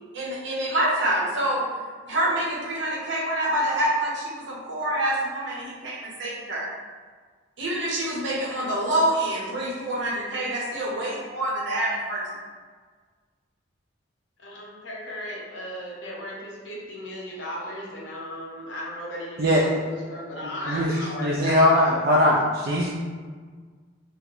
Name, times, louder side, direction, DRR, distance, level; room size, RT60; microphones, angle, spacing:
voice 1, 0.1-1.6 2.0-6.7 7.6-12.2, right 1 dB, 70° right, -5 dB, 0.8 m, -26 dB
voice 2, 14.4-22.1, equal, 75° left, -4 dB, 0.8 m, -36 dB
voice 3, 20.7-22.9, left 1 dB, 50° right, -4 dB, 0.3 m, -21 dB
2.8 x 2.1 x 3.7 m, 1.5 s
head